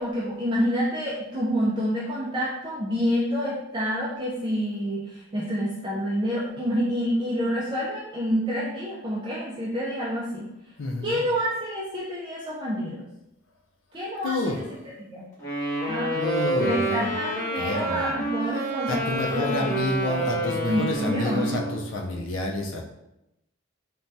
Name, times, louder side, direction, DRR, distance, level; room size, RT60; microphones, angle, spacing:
voice 1, 0.0-10.5 11.0-13.1 13.9-14.4 15.0-15.2 15.9-16.2 16.6-19.8 20.7-21.5, equal, 25° right, -7 dB, 0.4 m, -28 dB
voice 2, 10.8-11.2 14.2-14.6 16.2-17.1 17.6-18.2 18.9-22.9, left 2 dB, 75° left, 1 dB, 0.5 m, -29 dB
Wind instrument woodwind instrument, 15.4-21.9, right 2 dB, 15° left, 0.7 m, -28 dB
3.2 x 2.2 x 2.6 m, 0.88 s
head